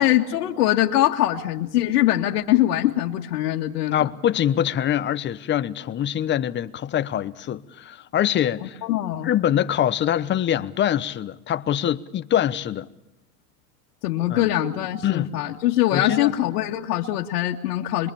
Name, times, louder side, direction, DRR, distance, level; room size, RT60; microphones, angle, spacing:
voice 1, 0.0-4.1 8.6-9.3 14.0-18.1, left 13 dB, 70° left, 2.2 m, -22 dB
voice 2, 3.9-8.8 9.2-12.9 14.3-14.5 15.0-15.3 15.9-16.3, left 10 dB, 25° left, 1.0 m, -24 dB
26.5 x 23.5 x 7.2 m
supercardioid pair, 135°, 46 cm